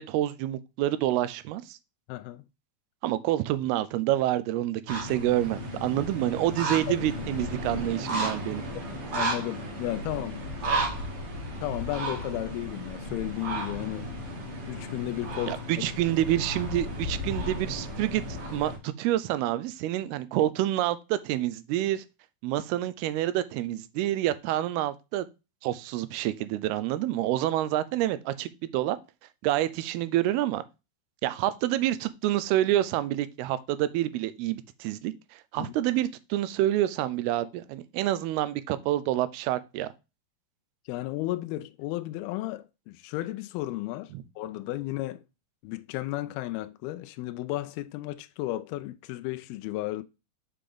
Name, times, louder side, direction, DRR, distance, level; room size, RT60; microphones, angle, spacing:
voice 1, 0.0-1.8 3.0-8.6 15.5-22.0 22.4-25.3 25.6-29.0 29.4-30.6 31.2-39.9 44.1-44.2, right 14 dB, 85° right, 2.5 m, -28 dB
voice 2, 2.1-2.5 9.1-10.4 11.6-14.1 14.7-15.6 35.6-35.7 40.9-45.2 45.6-50.0, left 16 dB, 85° left, 2.4 m, -34 dB
sound 1, 4.9-18.8, right 1 dB, 40° right, 2.4 m, -34 dB
6.9 x 5.0 x 3.7 m
omnidirectional pair, 4.5 m